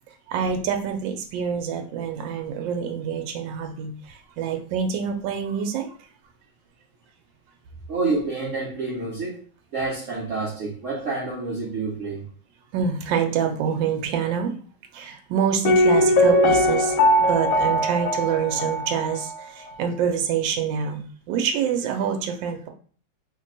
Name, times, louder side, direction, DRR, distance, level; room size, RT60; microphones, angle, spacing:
voice 1, 0.3-6.1 12.7-14.5 14.9-22.7, right 7 dB, 85° right, 4 dB, 1.3 m, -26 dB
voice 2, 7.9-9.4 9.7-12.3, right 3 dB, 60° right, -4 dB, 0.8 m, -28 dB
Piano, 15.7-19.4 19.7-19.8, left 1 dB, 70° left, 0.8 m, -20 dB
3.2 x 2.2 x 3.8 m, 0.43 s
omnidirectional pair, 2.0 m